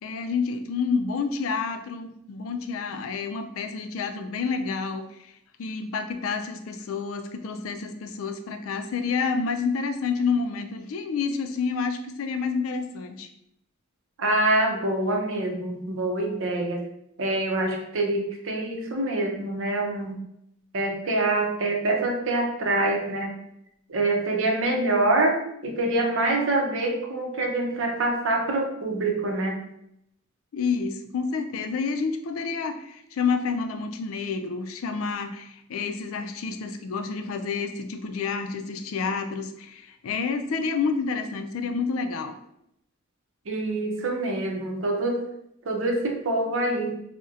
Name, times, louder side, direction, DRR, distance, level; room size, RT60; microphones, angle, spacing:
voice 1, 0.0-5.3 5.6-13.3 30.5-42.3, left 5 dB, 80° left, 7 dB, 0.4 m, -29 dB
voice 2, 14.2-16.8 17.2-20.2 20.7-23.3 23.9-29.6 43.5-45.2 45.6-46.9, right 2 dB, 70° right, 2 dB, 0.6 m, -25 dB
3.9 x 2.1 x 2.4 m, 0.77 s
head